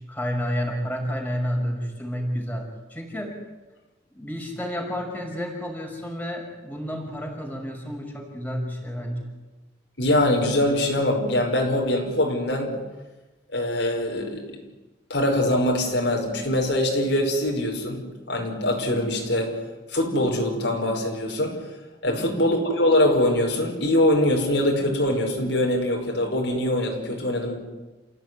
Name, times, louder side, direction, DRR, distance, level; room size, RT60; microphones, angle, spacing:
voice 1, 0.1-3.4 4.1-9.2 22.0-22.3, equal, 10° left, 0 dB, 6.0 m, -30 dB
voice 2, 10.0-12.8 13.5-14.6 15.1-19.6 19.9-21.7 22.0-27.6, left 1 dB, 65° left, 1 dB, 5.3 m, -23 dB
29.0 x 16.5 x 9.7 m, 1.2 s
head